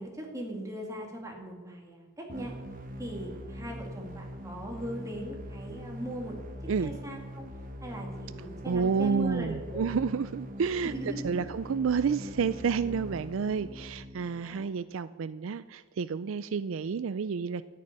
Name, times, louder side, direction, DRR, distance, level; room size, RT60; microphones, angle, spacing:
voice 1, 0.0-2.5 3.0-6.4 6.8-7.5 7.8-9.9 10.8-11.5 14.2-14.7, right 1 dB, 15° right, 0 dB, 2.5 m, -39 dB
sound 1, 2.3-14.3, equal, 45° right, 1.4 m, -42 dB
voice 2, 8.7-10.9 11.2-17.6, right 5 dB, 70° right, 15 dB, 0.4 m, -30 dB
13.0 x 6.8 x 9.9 m, 1.4 s
head